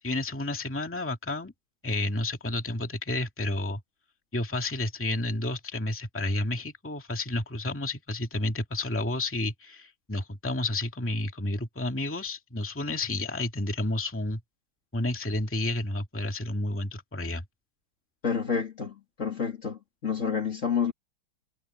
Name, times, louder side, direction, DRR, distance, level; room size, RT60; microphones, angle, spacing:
voice 1, 0.0-1.5 1.8-3.8 4.3-14.4 14.9-17.4, left 2 dB, 5° left, 1.9 m, -31 dB
voice 2, 18.2-20.9, left 6 dB, 35° left, 2.3 m, -29 dB
omnidirectional pair, 2.3 m